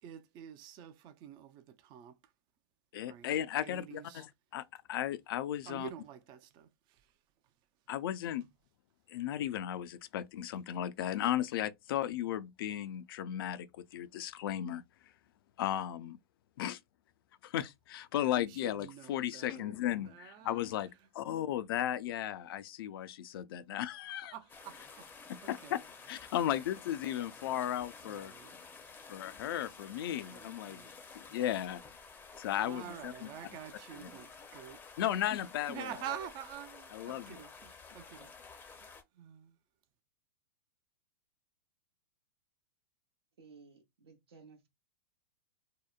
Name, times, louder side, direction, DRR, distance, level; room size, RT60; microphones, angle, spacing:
voice 1, 0.0-2.2 3.0-3.3 3.6-4.2 5.7-7.0 18.4-20.6 24.3-25.1 25.6-25.8 28.1-28.6 30.3-30.9 32.6-34.3 34.5-34.8 35.7-38.9 39.1-39.6, right 10 dB, 35° right, 0.4 m, -47 dB
voice 2, 2.9-5.9 7.9-8.4 9.1-13.7 13.9-14.8 15.6-16.2 16.6-16.8 17.4-20.9 21.1-24.3 25.5-25.8 26.1-28.3 29.1-30.8 31.1-31.8 32.4-33.3 35.0-35.9 36.9-37.3, left 11 dB, 65° left, 0.4 m, -35 dB
sound 1, 24.5-39.0, left 4 dB, 15° left, 0.6 m, -52 dB
voice 3, 33.9-34.5 43.4-44.7, right 4 dB, 85° right, 0.9 m, -56 dB
2.7 x 2.1 x 2.3 m
hypercardioid pair, 115°, 13 cm